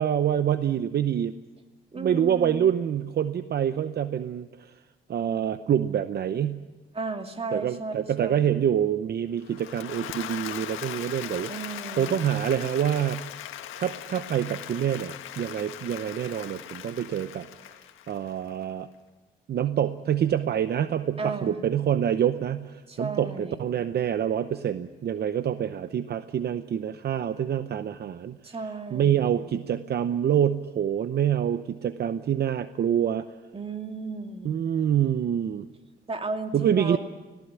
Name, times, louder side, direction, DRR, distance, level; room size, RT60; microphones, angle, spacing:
voice 1, 0.0-1.4 1.9-4.7 5.1-6.6 7.5-11.5 12.0-13.2 13.8-17.5 18.1-18.9 19.5-28.4 28.9-33.3 34.4-35.7 36.5-37.0, right 9 dB, 55° right, 12 dB, 0.8 m, -26 dB
voice 2, 1.9-2.7 6.9-8.6 11.5-12.3 21.2-21.7 22.9-23.7 28.4-29.4 33.5-34.5 36.1-37.0, right 3 dB, 30° right, 5 dB, 2.4 m, -34 dB
Applause / Crowd, 9.4-18.6, left 12 dB, 90° left, 1.5 m, -39 dB
18.0 x 18.0 x 9.7 m, 1.2 s
cardioid pair, 90°, 20 cm